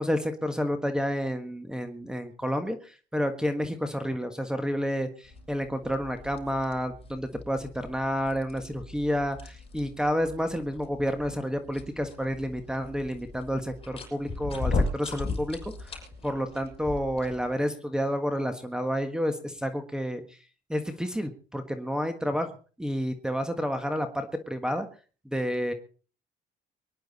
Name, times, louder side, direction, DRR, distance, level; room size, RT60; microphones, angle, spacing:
voice 1, 0.0-2.8 3.1-20.2 20.7-22.5 22.8-24.9 25.3-25.7, equal, 5° right, 8 dB, 1.4 m, -30 dB
sound 1, 5.2-17.6, left 3 dB, 35° left, 6.0 m, -37 dB
24.0 x 10.5 x 4.1 m, 0.38 s
cardioid pair, 110°, 17 cm